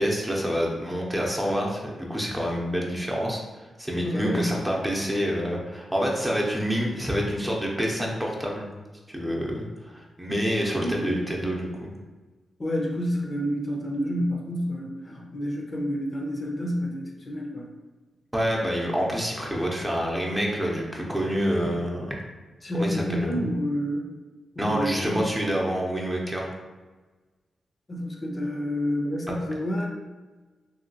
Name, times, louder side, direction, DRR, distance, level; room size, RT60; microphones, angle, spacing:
voice 1, 0.0-8.7 9.1-11.9 18.3-22.2 22.7-23.5 24.6-26.5, equal, 15° right, -2 dB, 0.7 m, -27 dB
voice 2, 4.0-4.5 10.8-11.2 12.6-17.7 22.6-24.1 24.6-25.2 27.9-29.9, equal, 40° left, -1 dB, 0.6 m, -29 dB
2.9 x 2.8 x 2.7 m, 1.3 s
cardioid pair, 55°, 0 cm